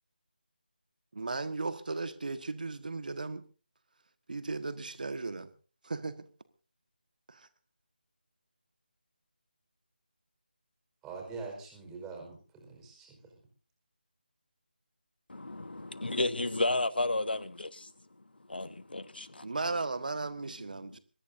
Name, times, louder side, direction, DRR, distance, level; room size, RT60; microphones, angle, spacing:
voice 1, 1.1-3.5 4.3-5.5 5.8-6.3 7.3-7.5 19.4-21.0, right 3 dB, 55° right, 1.6 m, -36 dB
voice 2, 11.0-13.2, right 4 dB, 10° right, 4.9 m, -44 dB
voice 3, 15.3-17.9 18.5-19.5, left 2 dB, 70° left, 1.3 m, -32 dB
23.0 x 20.5 x 2.7 m
figure-of-eight pair, 160°, 6 cm